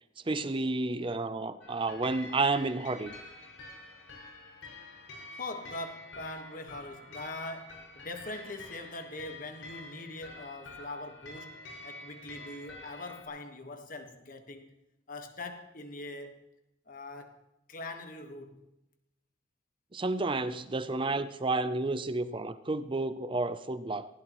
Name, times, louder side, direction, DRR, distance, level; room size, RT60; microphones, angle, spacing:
voice 1, 0.2-3.1 19.9-24.1, right 3 dB, 25° right, 0.5 m, -31 dB
sound 1, 1.6-13.2, left 2 dB, 85° left, 5.6 m, -48 dB
voice 2, 5.3-14.7 15.1-16.3 16.9-18.7, left 2 dB, 45° left, 1.4 m, -42 dB
19.5 x 16.0 x 3.1 m
head